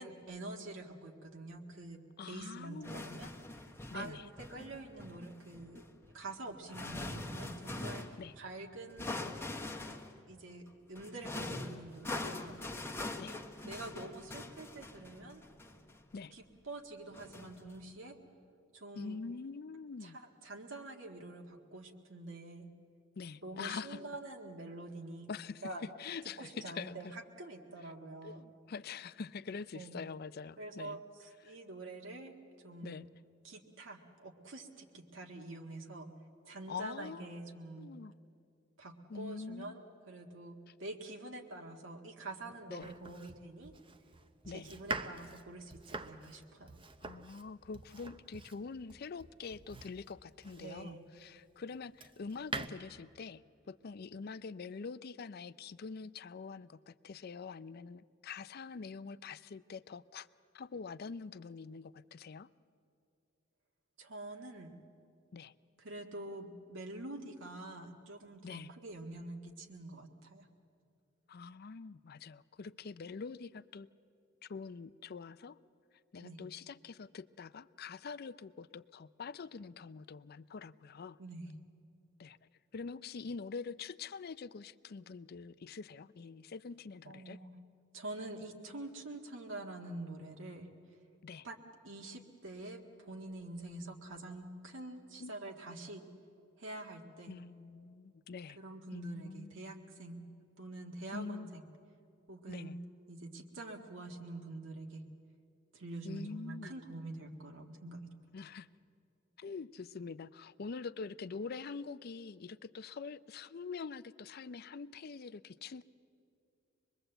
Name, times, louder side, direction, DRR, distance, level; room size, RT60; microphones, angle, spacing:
voice 1, 0.0-3.6 3.9-5.8 6.1-9.2 9.9-10.0 10.3-10.6 10.9-12.7 13.6-15.4 16.3-18.2 18.7-19.2 20.0-22.7 23.4-25.3 25.6-25.8 26.4-28.4 29.7-30.0 30.6-33.1 33.4-36.1 36.5-37.9 38.8-43.7 44.5-46.8 50.6-51.0 64.0-64.7 65.8-70.5 76.2-76.4 81.2-81.5 87.1-87.5 87.9-90.7 91.4-91.6 91.8-96.0 96.6-97.4 98.6-100.2 100.6-101.6 102.3-102.8 103.1-105.0 105.7-108.1, right 2 dB, 80° right, 2 dB, 1.8 m, -46 dB
voice 2, 2.2-3.1 3.9-4.3 8.2-8.3 13.1-13.4 16.1-16.3 18.9-20.2 23.2-24.0 25.3-27.1 28.2-31.0 31.4-31.6 32.8-33.1 36.5-37.3 37.8-38.1 39.1-39.8 42.7-42.9 44.4-44.7 47.0-60.3 60.5-62.5 65.3-65.5 68.4-68.7 71.3-73.9 74.4-75.6 76.1-81.2 82.2-82.4 82.7-87.4 91.2-91.5 95.2-95.4 97.3-98.6 98.9-99.5 101.1-101.6 102.5-102.8 106.0-106.8 108.3-108.7 109.4-115.8, left 5 dB, 55° left, 16 dB, 0.5 m, -45 dB
sound 1, 2.8-8.2 9.0-10.2 11.0-16.2 17.1-17.9, left 2 dB, 15° left, 1.1 m, -43 dB
Domestic sounds home sounds, 42.8-51.0 51.5-52.7, right 3 dB, 25° right, 0.8 m, -45 dB
24.5 x 21.5 x 7.9 m, 2.5 s
head